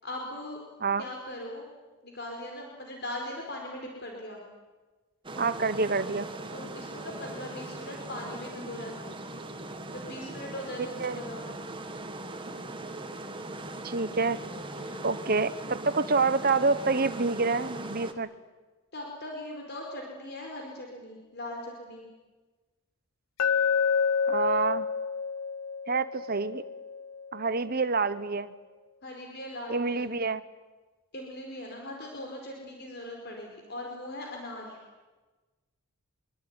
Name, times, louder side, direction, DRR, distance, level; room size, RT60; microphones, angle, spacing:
voice 1, 0.0-0.6 1.0-1.6 2.0-4.4 6.5-9.2 9.9-11.6 14.7-15.1 18.9-22.1 29.0-30.1 31.1-34.8, left 1 dB, 50° left, 1 dB, 4.7 m, -40 dB
sound 1, 5.2-18.1, right 2 dB, 25° right, 1.9 m, -40 dB
voice 2, 5.4-6.3 11.0-11.2 13.8-14.4 15.0-18.3 24.3-24.9 25.9-26.6 27.3-28.5 29.7-30.4, right 4 dB, 45° right, 13 dB, 1.1 m, -27 dB
Glass, 23.4-27.5, left 6 dB, 85° left, 0.8 m, -29 dB
24.0 x 24.0 x 9.7 m, 1.3 s
head